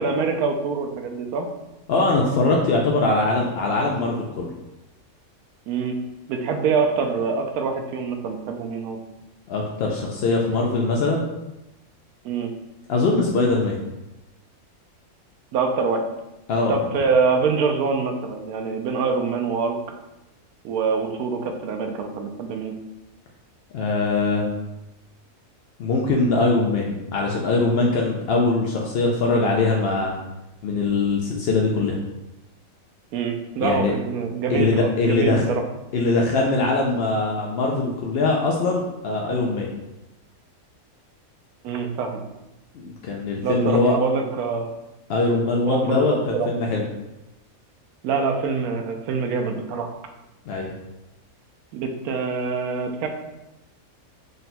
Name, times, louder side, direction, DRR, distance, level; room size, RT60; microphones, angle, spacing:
voice 1, 0.0-1.5 5.7-6.0 6.3-9.0 12.2-12.5 15.5-16.0 16.7-19.8 20.6-22.7 33.1-35.6 41.6-42.2 43.4-44.7 45.7-46.5 48.0-50.0 51.7-53.1, right 5 dB, 85° right, 4 dB, 1.1 m, -25 dB
voice 2, 1.9-4.5 9.5-11.3 12.9-13.8 16.5-16.8 23.7-24.5 25.8-30.2 30.6-32.0 33.6-33.9 34.5-35.4 35.9-39.7 42.7-44.0 45.1-46.9 50.5-50.7, left 3 dB, 70° left, -1 dB, 0.5 m, -22 dB
3.8 x 2.2 x 4.1 m, 0.95 s
omnidirectional pair, 1.5 m